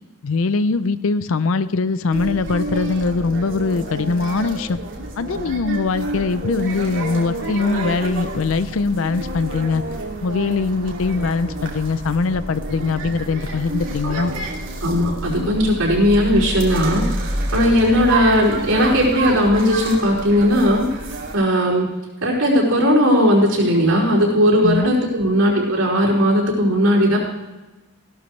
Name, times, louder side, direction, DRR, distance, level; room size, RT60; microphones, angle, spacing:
voice 1, 0.2-4.8 5.2-9.8 10.2-14.3 24.6-24.9, left 4 dB, 70° left, 14 dB, 0.5 m, -22 dB
sound 1, 2.1-21.3, right 2 dB, 60° right, 2.6 m, -29 dB
voice 2, 14.0-14.4 14.8-20.9 21.3-21.9 22.2-27.2, equal, 85° right, -4 dB, 4.9 m, -17 dB
16.5 x 12.0 x 3.2 m, 1.1 s
head